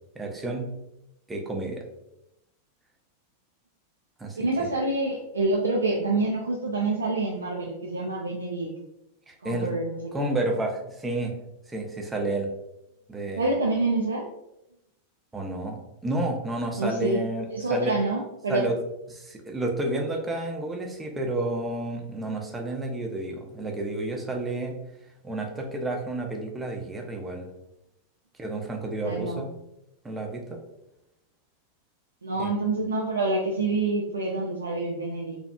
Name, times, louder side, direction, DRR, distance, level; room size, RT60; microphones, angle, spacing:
voice 1, 0.1-0.7 1.3-1.8 4.2-4.4 9.3-9.7 10.1-11.3 11.7-12.5 13.1-13.5 15.3-17.9 18.5-18.8 19.1-24.8 25.2-27.5 28.4-29.5 30.0-30.6 32.4-32.5, right 2 dB, 10° right, 1 dB, 0.5 m, -30 dB
voice 2, 4.4-8.7 9.4-10.3 13.4-14.3 16.7-17.2 17.5-18.7 29.0-29.5 32.2-35.4, right 2 dB, 75° right, -1 dB, 0.3 m, -27 dB
2.7 x 2.3 x 2.2 m, 0.87 s
figure-of-eight pair, 90°, 0 cm